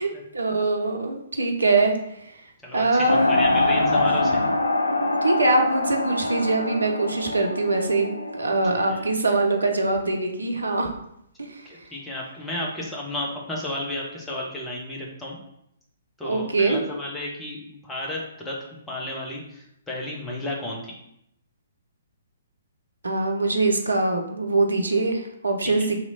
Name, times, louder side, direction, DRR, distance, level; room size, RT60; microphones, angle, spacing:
voice 1, 0.0-1.9 2.3-2.4 2.7-3.4 5.2-10.9 11.4-11.7 16.2-16.8 23.0-25.9, right 2 dB, 75° right, 3 dB, 0.7 m, -23 dB
voice 2, 2.6-4.4 8.9-9.1 11.7-15.4 16.2-18.5 18.9-20.9 25.6-25.9, left 1 dB, 10° left, -3 dB, 0.9 m, -33 dB
sound 1, 3.1-9.1, left 2 dB, 75° left, 0.4 m, -24 dB
3.0 x 2.9 x 4.1 m, 0.77 s
figure-of-eight pair, 125°, 0 cm